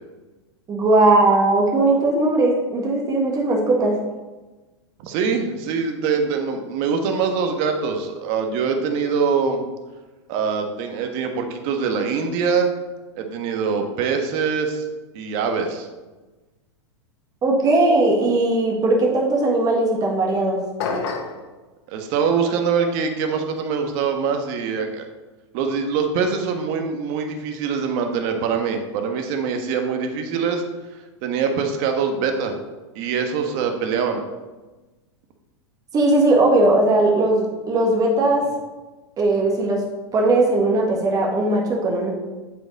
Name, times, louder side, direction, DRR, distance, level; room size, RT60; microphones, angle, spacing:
voice 1, 0.7-4.0 17.4-20.6 35.9-38.5 39.2-39.8 40.1-42.1, right 2 dB, 25° right, 0 dB, 1.5 m, -18 dB
voice 2, 5.0-9.6 10.3-12.7 13.1-14.8 15.1-15.9 21.9-25.1 25.5-30.6 31.2-32.6 32.9-34.2, right 5 dB, 50° right, 5 dB, 1.2 m, -23 dB
sound 1, 20.8-21.4, left 4 dB, 65° left, 1.3 m, -26 dB
8.1 x 5.1 x 4.1 m, 1.2 s
hypercardioid pair, 120°, 15 cm